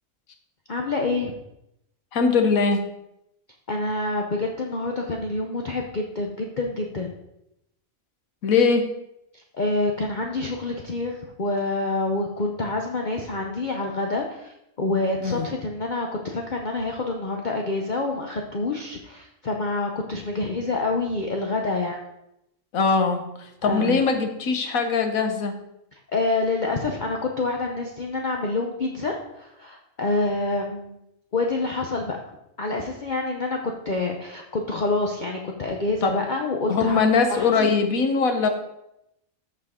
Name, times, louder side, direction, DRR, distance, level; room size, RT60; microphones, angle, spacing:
voice 1, 0.7-1.3 3.7-7.1 9.5-22.0 23.6-24.0 26.1-31.0 31.3-32.2 32.6-33.6 33.8-37.0 37.3-37.7, left 3 dB, 40° left, 2 dB, 0.8 m, -27 dB
voice 2, 2.1-2.8 8.4-8.9 15.2-15.5 22.7-25.6 36.0-36.2 36.7-38.5, left 4 dB, 85° left, 6 dB, 1.5 m, -21 dB
14.0 x 4.8 x 3.7 m, 0.84 s
omnidirectional pair, 1.4 m